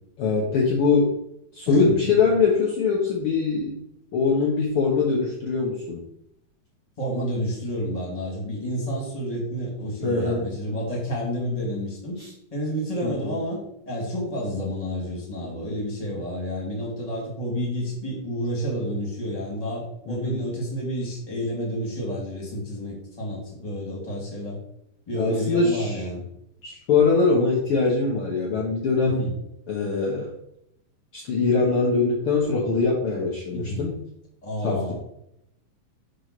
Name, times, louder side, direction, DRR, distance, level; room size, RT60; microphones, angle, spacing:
voice 1, 0.2-1.1 1.5-3.8 4.1-6.0 10.0-10.5 12.2-12.3 13.0-13.4 20.1-20.3 25.1-26.0 26.6-29.2 29.7-30.3 31.1-34.0 34.6-34.9, left 4 dB, 80° left, -3 dB, 1.2 m, -22 dB
voice 2, 1.6-2.0 7.0-12.2 12.5-13.6 13.8-24.6 25.1-26.2 29.0-29.3 33.5-33.8 34.4-34.9, equal, 15° left, -3 dB, 1.4 m, -29 dB
7.5 x 3.2 x 6.0 m, 0.78 s
omnidirectional pair, 4.2 m